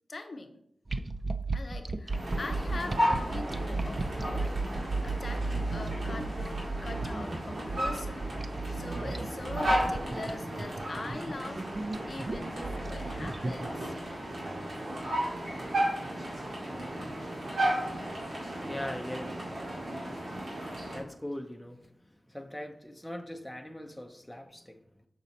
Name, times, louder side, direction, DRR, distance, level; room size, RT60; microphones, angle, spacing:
voice 1, 0.1-0.6 1.5-4.5 5.0-11.6 12.1-13.9, left 2 dB, 55° left, 0.7 m, -42 dB
sound 1, 0.9-14.0, right 3 dB, 40° right, 0.4 m, -35 dB
sound 2, 2.1-21.0, right 1 dB, 80° right, 2.2 m, -34 dB
voice 2, 18.2-24.8, left 1 dB, 5° left, 0.6 m, -42 dB
6.6 x 4.1 x 4.1 m
wide cardioid pair, 70°, 0 cm